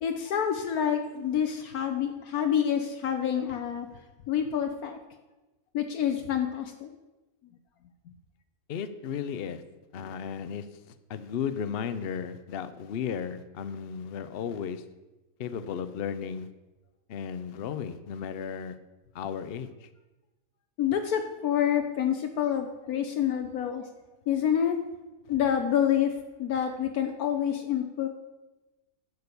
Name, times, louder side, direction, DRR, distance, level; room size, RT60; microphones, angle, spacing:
voice 1, 0.0-5.0 5.7-6.9 7.4-7.5 8.1-8.2 20.8-23.9 24.3-24.8 25.3-28.1, left 9 dB, 75° left, 5 dB, 1.3 m, -28 dB
voice 2, 8.7-9.6 9.9-10.7 11.1-14.8 15.4-16.5 17.1-18.8 19.1-19.9, left 7 dB, 50° left, 12 dB, 0.8 m, -34 dB
10.5 x 6.7 x 6.9 m, 1.1 s
omnidirectional pair, 1.6 m